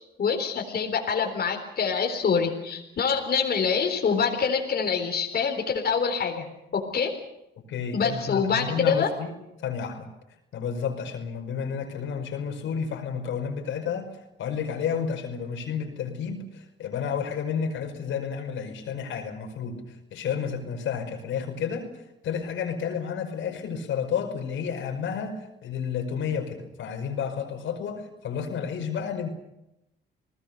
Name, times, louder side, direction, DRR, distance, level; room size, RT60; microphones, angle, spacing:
voice 1, 0.2-6.5 6.7-7.1 7.9-9.1, left 6 dB, 50° left, 2 dB, 4.1 m, -25 dB
voice 2, 7.7-10.1 10.5-29.3, left 7 dB, 75° left, 5 dB, 5.2 m, -31 dB
30.0 x 19.5 x 6.7 m, 0.90 s
cardioid pair, 90°, 20 cm